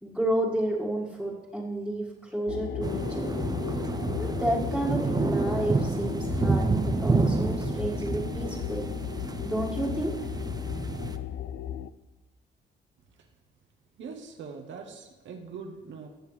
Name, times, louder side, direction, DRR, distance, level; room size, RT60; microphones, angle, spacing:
voice 1, 0.0-3.3 4.2-8.9 9.4-10.2, right 1 dB, ahead, -8 dB, 1.8 m, -31 dB
sound 1, 2.5-11.9, left 11 dB, 65° left, 0.4 m, -35 dB
sound 2, 2.8-11.2, right 3 dB, 20° right, 0.7 m, -29 dB
voice 2, 14.0-16.1, right 5 dB, 70° right, 3 dB, 1.1 m, -42 dB
17.0 x 6.9 x 3.3 m, 1.3 s
cardioid pair, 90°, 20 cm